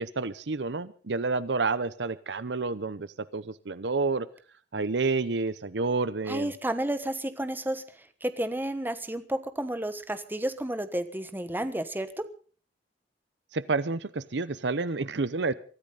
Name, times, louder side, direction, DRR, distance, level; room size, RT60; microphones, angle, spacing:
voice 1, 0.0-3.1 3.3-4.3 4.7-6.5 13.5-15.5, right 3 dB, 70° right, 16 dB, 0.8 m, -29 dB
voice 2, 6.3-7.8 8.2-12.2, right 1 dB, 10° right, 10 dB, 1.3 m, -31 dB
23.5 x 14.0 x 4.0 m, 0.40 s
head